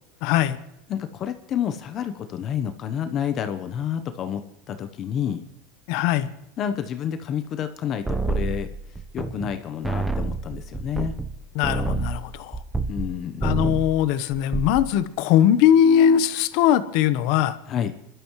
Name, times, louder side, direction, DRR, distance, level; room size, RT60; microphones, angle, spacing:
voice 1, 0.2-0.6 5.9-6.3 11.5-12.6 13.4-17.6, left 10 dB, 55° left, 13 dB, 1.0 m, -20 dB
voice 2, 0.9-4.4 4.7-5.4 6.6-8.7 9.1-11.1 12.9-13.5 17.7-17.9, left 9 dB, 35° left, 9 dB, 0.9 m, -29 dB
sound 1, 8.1-9.6 9.8-13.1 13.4-14.0 14.3-14.9, right 3 dB, 5° right, 0.9 m, -28 dB
27.0 x 12.5 x 3.2 m, 0.82 s
supercardioid pair, 145°, 0 cm